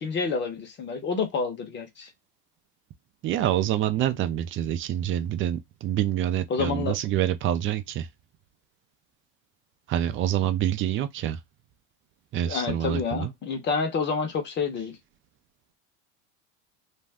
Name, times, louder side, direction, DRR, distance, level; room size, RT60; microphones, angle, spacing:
voice 1, 0.0-2.1 6.5-7.0 12.5-15.0, left 5 dB, 40° left, 1.0 m, -28 dB
voice 2, 3.2-8.1 9.9-11.4 12.3-13.3, right 11 dB, 40° right, 0.5 m, -26 dB
2.6 x 2.2 x 3.4 m
supercardioid pair, 110°, 30 cm